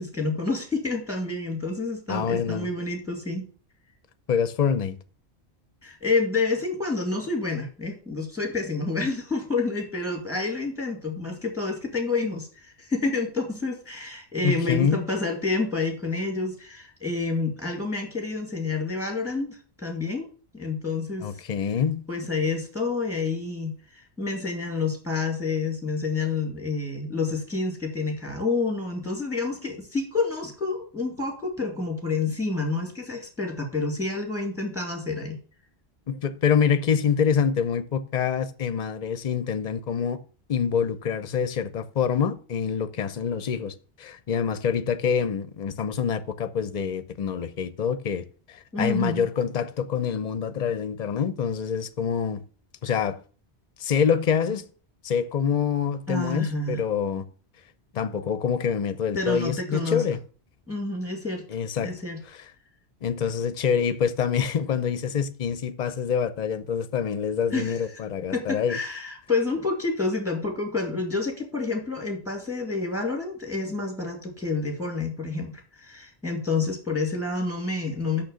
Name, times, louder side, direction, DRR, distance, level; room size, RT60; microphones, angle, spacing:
voice 1, 0.0-3.5 5.8-20.3 20.5-21.3 22.1-35.4 48.7-49.2 56.1-56.8 59.1-60.0 60.7-61.4 61.8-62.2 67.5-67.8 68.3-78.2, left 3 dB, 5° right, 2.2 m, -28 dB
voice 2, 2.1-2.7 4.3-5.0 14.4-15.0 21.2-22.0 36.1-40.2 40.5-52.4 52.8-53.2 53.8-54.7 55.0-57.2 57.9-60.2 61.5-62.0 62.3-62.5 63.0-68.8, left 7 dB, 45° left, 0.7 m, -26 dB
6.4 x 6.1 x 6.9 m
omnidirectional pair, 1.1 m